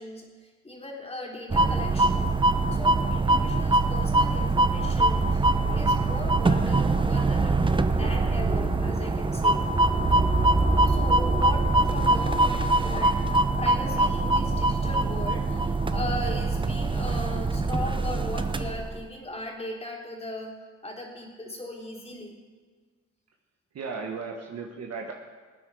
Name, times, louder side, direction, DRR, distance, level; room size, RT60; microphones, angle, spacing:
voice 1, 0.0-2.4 2.7-9.7 10.9-20.5 20.8-22.4, left 1 dB, 20° left, -1 dB, 3.6 m, -38 dB
sound 1, 1.5-19.0, right 2 dB, 15° right, 0.7 m, -23 dB
voice 2, 23.7-25.1, right 4 dB, 60° right, 1 dB, 1.5 m, -35 dB
20.0 x 9.0 x 4.9 m, 1.5 s
cardioid pair, 90°, 30 cm